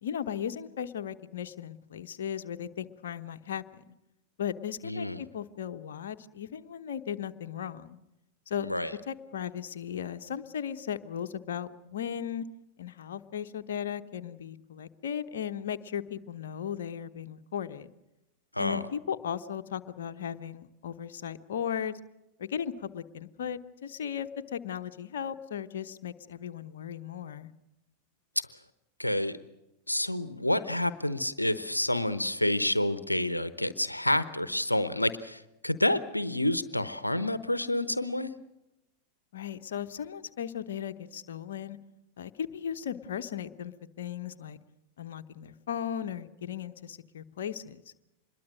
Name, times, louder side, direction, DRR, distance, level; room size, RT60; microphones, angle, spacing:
voice 1, 0.0-3.8 4.4-8.0 8.5-8.7 9.1-12.4 12.8-17.9 18.6-22.0 22.4-27.5 39.3-41.8 42.2-44.6 45.0-47.8, left 9 dB, 60° left, 8 dB, 1.0 m, -36 dB
voice 2, 4.8-5.2 8.6-8.9 18.5-18.8 29.0-29.4 29.9-38.3, left 1 dB, 85° left, 15 dB, 0.9 m, -29 dB
25.5 x 22.0 x 6.4 m, 0.93 s
figure-of-eight pair, 90°, 0 cm